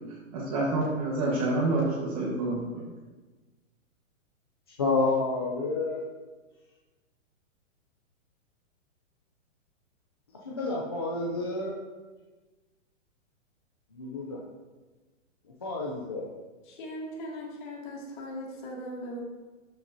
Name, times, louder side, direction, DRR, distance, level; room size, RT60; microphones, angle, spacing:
voice 1, 0.3-2.8, right 2 dB, 30° right, -5 dB, 1.3 m, -28 dB
voice 2, 4.8-6.1 10.4-11.8 13.9-14.4 15.6-16.3, left 3 dB, 20° left, -4 dB, 0.4 m, -29 dB
voice 3, 16.7-19.2, equal, 40° left, -3 dB, 2.2 m, -39 dB
12.5 x 6.0 x 2.7 m, 1.3 s
hypercardioid pair, 165°, 39 cm